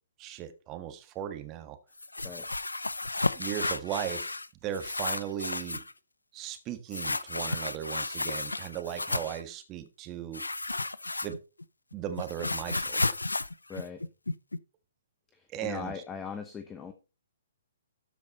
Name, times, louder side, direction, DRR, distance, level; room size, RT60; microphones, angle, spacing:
voice 1, 0.2-1.8 3.3-5.8 6.3-10.4 11.2-11.4 11.9-13.1 15.5-15.9, right 10 dB, 25° right, 8 dB, 1.6 m, -37 dB
sound 1, 2.0-4.5 4.7-5.9 6.9-9.4 10.3-11.6 11.9-14.6, left 2 dB, 90° left, 0.5 m, -33 dB
voice 2, 13.7-14.0 15.3-16.9, left 6 dB, 15° left, 7 dB, 1.0 m, -40 dB
13.0 x 5.3 x 4.2 m, 0.30 s
figure-of-eight pair, 125°, 0 cm